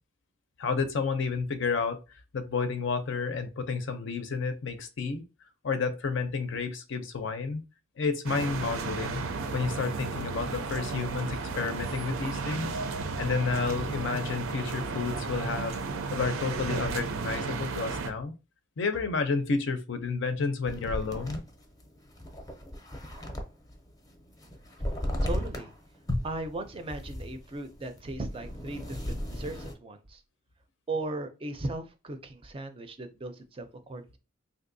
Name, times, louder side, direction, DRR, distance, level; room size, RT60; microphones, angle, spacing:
voice 1, 0.6-2.0 2.3-5.2 5.6-7.6 8.0-9.2 9.5-12.7 13.2-15.8 16.1-18.3 18.8-21.4, left 4 dB, 65° left, 0.5 m, -30 dB
sound 1, 8.2-18.1, right 4 dB, 85° right, 0.5 m, -34 dB
sound 2, 20.7-23.8 24.1-25.7 26.1-29.7, equal, 20° left, 0.6 m, -35 dB
voice 2, 25.2-25.7 26.2-30.2 30.9-34.2, right 2 dB, 25° right, 0.4 m, -37 dB
3.5 x 2.6 x 2.6 m
head